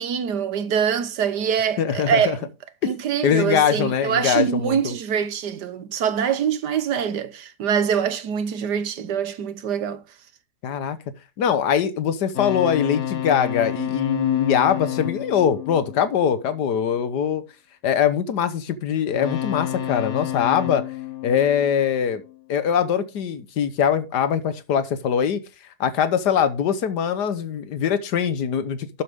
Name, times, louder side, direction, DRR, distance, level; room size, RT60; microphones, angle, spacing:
voice 1, 0.0-2.5 2.8-10.0, right 7 dB, 85° right, 1.7 m, -24 dB
voice 2, 1.8-2.4 3.2-4.8 10.6-11.0 11.4-17.4 17.8-20.8 21.2-22.2 22.5-25.4 25.8-29.0, left 8 dB, 85° left, 1.6 m, -22 dB
sound 1, 12.3-16.7 19.1-22.4, left 11 dB, 50° left, 1.1 m, -30 dB
12.0 x 7.4 x 3.6 m
omnidirectional pair, 1.7 m